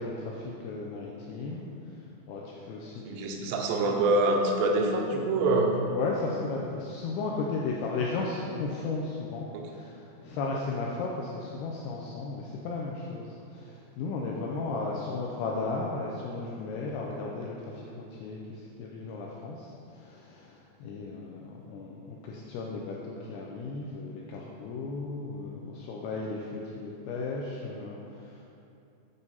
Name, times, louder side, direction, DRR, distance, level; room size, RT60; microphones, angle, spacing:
voice 1, 0.0-1.7 2.3-3.5 5.9-28.4, left 3 dB, 85° left, -3 dB, 2.3 m, -35 dB
voice 2, 3.0-5.8 9.5-9.6, right 2 dB, 85° right, 2 dB, 2.8 m, -25 dB
9.0 x 3.3 x 4.1 m, 2.7 s
omnidirectional pair, 5.1 m